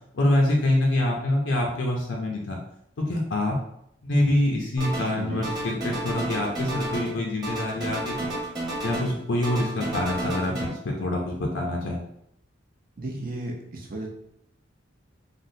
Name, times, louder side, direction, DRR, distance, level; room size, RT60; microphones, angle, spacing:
voice 1, 0.1-2.6 3.0-3.6 4.0-8.3 8.8-12.0, left 1 dB, 75° left, -1 dB, 0.5 m, -25 dB
sound 1, 4.8-5.2 5.4-7.2 7.4-9.2 9.4-10.7, right 1 dB, 20° right, 1.0 m, -31 dB
voice 2, 5.1-5.5 13.0-14.1, right 2 dB, 50° right, 0 dB, 0.6 m, -34 dB
3.4 x 2.1 x 2.7 m, 0.73 s
head